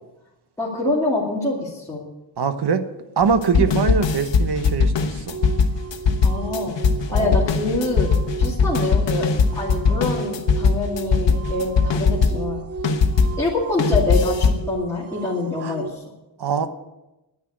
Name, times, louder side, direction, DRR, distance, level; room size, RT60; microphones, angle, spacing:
voice 1, 0.6-2.0 3.6-3.9 6.2-6.8 7.1-12.6 13.4-16.1, left 2 dB, 5° left, -7 dB, 2.3 m, -26 dB
voice 2, 2.4-2.8 3.2-5.4 7.1-7.4 15.6-15.7 16.4-16.7, right 6 dB, 60° right, 9 dB, 1.1 m, -22 dB
sound 1, 3.2-13.4 13.8-14.7, left 5 dB, 70° left, 1.1 m, -20 dB
sound 2, 5.3-15.9, right 6 dB, 35° right, 0.5 m, -34 dB
10.0 x 10.0 x 8.5 m, 0.98 s
wide cardioid pair, 170°, 45 cm